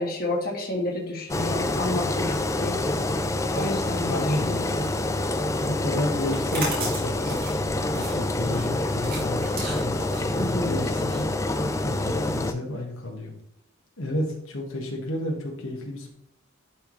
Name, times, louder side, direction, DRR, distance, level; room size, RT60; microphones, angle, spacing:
voice 1, 0.0-2.8 3.5-4.6 10.4-10.7, left 1 dB, 45° left, -1 dB, 1.7 m, -30 dB
Engine, 1.3-12.5, left 2 dB, 15° left, 0.4 m, -27 dB
voice 2, 4.1-4.6 5.6-11.3 11.8-13.3 14.0-16.1, left 1 dB, 80° left, 0 dB, 1.5 m, -31 dB
sound 1, 6.3-12.0, right 2 dB, 45° right, 2.7 m, -36 dB
11.5 x 4.6 x 3.2 m, 0.76 s
head